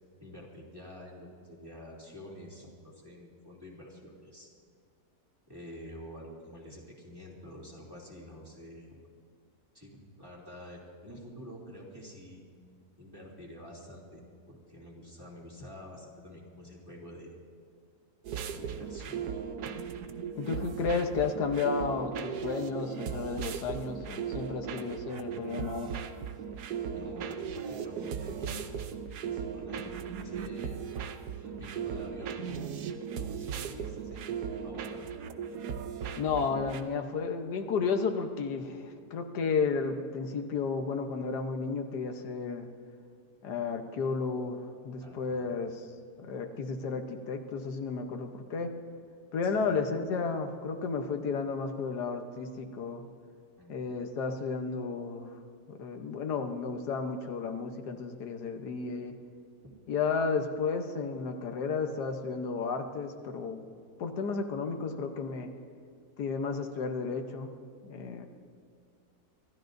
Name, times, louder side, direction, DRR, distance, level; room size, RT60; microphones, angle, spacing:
voice 1, 0.2-4.5 5.5-8.9 9.7-12.4 13.0-17.3 18.5-19.4 26.9-28.7 29.2-30.9 31.4-32.7 33.1-34.3 34.6-35.1 45.0-45.7 49.5-49.7 53.6-53.7, equal, 15° right, -3 dB, 2.7 m, -48 dB
sound 1, 18.2-36.8, right 7 dB, 75° right, 1.3 m, -37 dB
voice 2, 20.4-25.9 36.2-42.7 43.4-45.7 46.2-48.7 49.3-53.0 53.7-55.3 55.7-59.1 59.9-63.7 64.0-65.5 66.2-67.5 67.8-68.3, left 5 dB, 80° left, 5 dB, 1.5 m, -33 dB
26.0 x 13.0 x 2.6 m, 2.3 s
omnidirectional pair, 1.7 m